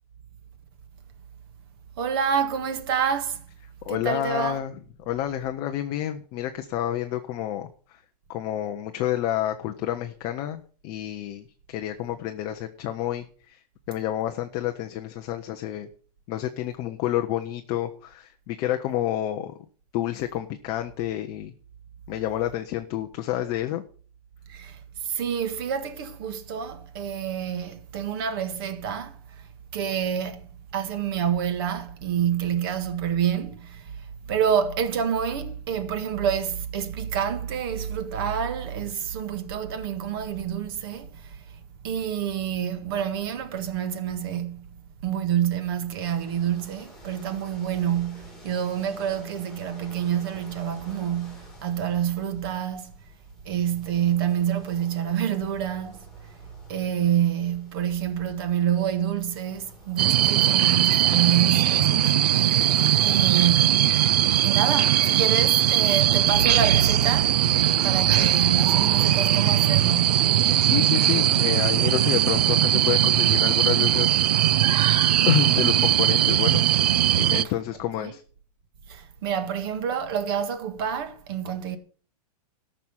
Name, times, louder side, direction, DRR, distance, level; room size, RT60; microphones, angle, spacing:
voice 1, 2.0-3.4 3.9-4.6 24.5-29.2 29.7-30.4 30.7-41.4 41.8-44.6 45.0-52.9 53.4-56.0 56.7-62.5 63.1-63.9 64.3-67.4 67.8-70.3 78.0-78.1 78.9-81.8, right 9 dB, 35° right, 1.7 m, -27 dB
voice 2, 3.8-4.7 5.1-8.0 8.3-13.6 13.9-15.9 16.3-19.5 19.9-21.5 22.1-23.8 70.6-74.2 75.3-76.7 77.2-78.2, left 12 dB, 20° left, 0.6 m, -29 dB
sound 1, 46.0-63.3, left 2 dB, 5° left, 3.2 m, -51 dB
sound 2, 60.0-77.4, right 11 dB, 80° right, 0.5 m, -20 dB
Car / Alarm, 66.0-77.1, right 5 dB, 50° right, 2.7 m, -36 dB
13.5 x 6.2 x 7.1 m
supercardioid pair, 175°, 20 cm